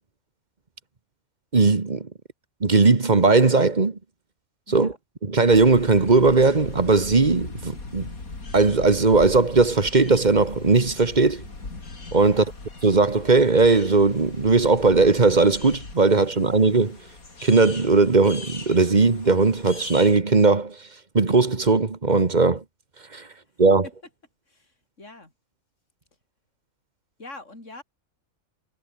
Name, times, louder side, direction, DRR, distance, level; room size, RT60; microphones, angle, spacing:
voice 1, 1.5-2.1 2.6-4.0 4.7-4.9 5.2-8.1 8.5-11.4 12.1-12.4 12.8-17.0 17.4-20.7 21.1-22.6 23.1-23.2 23.6-23.9, right 3 dB, 30° right, 1.6 m, -18 dB
voice 2, 4.7-5.0 12.2-12.6 23.3-23.4 24.5-25.3 27.2-27.8, left 2 dB, 55° left, 6.0 m, -44 dB
sound 1, 5.4-20.2, left 3 dB, 80° left, 4.4 m, -40 dB
omnidirectional pair, 1.5 m